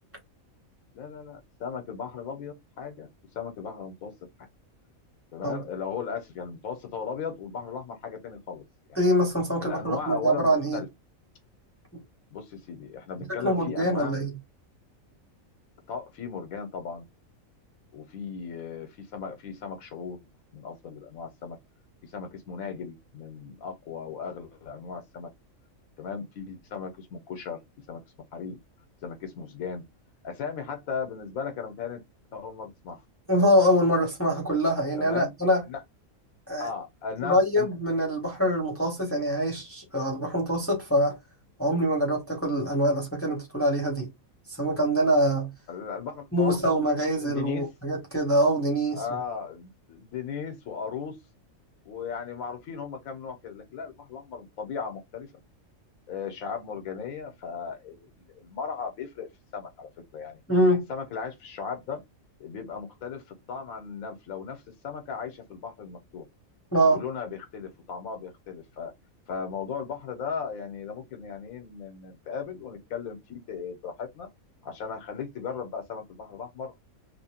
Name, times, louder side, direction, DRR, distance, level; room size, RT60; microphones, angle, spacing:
voice 1, 0.9-3.1 3.3-4.1 5.3-8.6 8.9-9.0 9.6-10.9 12.3-14.2 15.9-17.1 17.9-20.2 20.5-21.6 22.0-25.3 26.0-27.6 27.9-28.0 28.3-28.6 29.0-29.8 30.2-32.0 32.3-33.0 35.0-35.3 35.7-35.8 36.6-37.7 45.7-46.7 47.2-47.7 48.9-51.2 51.8-55.3 56.1-60.4 60.9-62.0 62.4-66.2 66.9-68.9 69.3-74.3 74.6-76.8, left 6 dB, 85° left, 1.1 m, -36 dB
voice 2, 9.0-10.8 13.3-14.3 33.3-35.6 36.5-36.7 37.2-41.2 41.6-44.1 44.5-45.5 46.3-49.0 60.5-60.8 66.7-67.0, equal, 10° left, 0.7 m, -24 dB
3.0 x 2.2 x 2.8 m
omnidirectional pair, 1.4 m